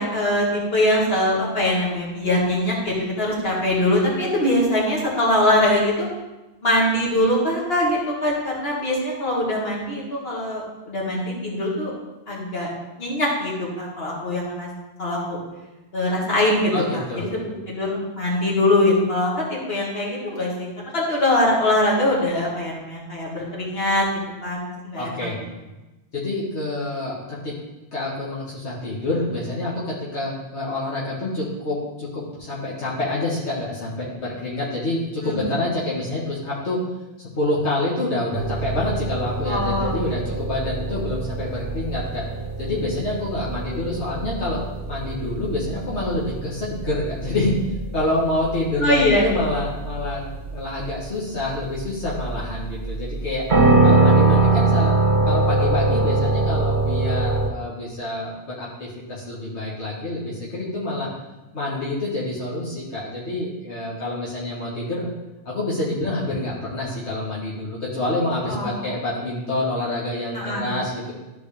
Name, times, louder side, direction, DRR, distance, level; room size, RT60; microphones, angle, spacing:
voice 1, 0.0-6.1 6.6-11.9 12.3-12.7 13.0-14.7 15.0-15.4 15.9-20.7 20.9-24.0 24.4-25.3 35.2-35.4 39.4-39.9 48.8-49.4 68.5-68.8 70.3-70.7, left 1 dB, 65° left, -5 dB, 2.4 m, -22 dB
voice 2, 16.7-17.2 25.0-25.4 26.1-27.5 27.9-36.8 37.2-42.3 42.6-47.6 47.9-53.4 53.8-54.9 55.3-61.1 61.5-65.1 65.5-71.1, left 2 dB, 85° left, -7 dB, 2.0 m, -27 dB
sound 1, 38.3-57.5, right 3 dB, 50° right, 1.2 m, -23 dB
13.5 x 4.6 x 3.4 m, 1.1 s
omnidirectional pair, 1.1 m